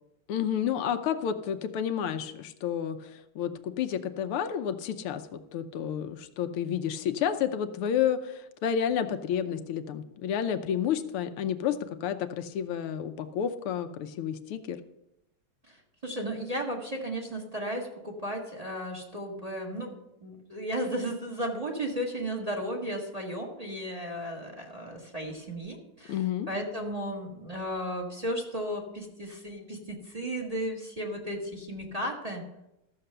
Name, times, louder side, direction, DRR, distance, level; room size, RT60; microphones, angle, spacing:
voice 1, 0.3-14.8 26.1-26.5, left 9 dB, 85° left, 8 dB, 1.7 m, -30 dB
voice 2, 16.0-19.9 20.2-26.2 26.5-32.4, equal, 20° right, 1 dB, 1.6 m, -34 dB
13.5 x 6.8 x 6.7 m, 0.88 s
omnidirectional pair, 2.3 m